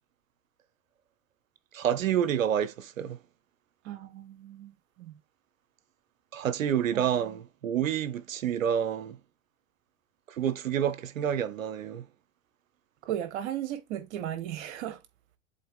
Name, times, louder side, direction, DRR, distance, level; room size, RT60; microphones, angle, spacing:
voice 1, 1.7-3.2 6.3-9.2 10.3-12.0, right 9 dB, 80° right, 0.9 m, -28 dB
voice 2, 3.8-5.2 6.9-7.4 13.0-15.0, right 11 dB, 60° right, 1.7 m, -36 dB
7.6 x 4.0 x 3.6 m
hypercardioid pair, 100°, 39 cm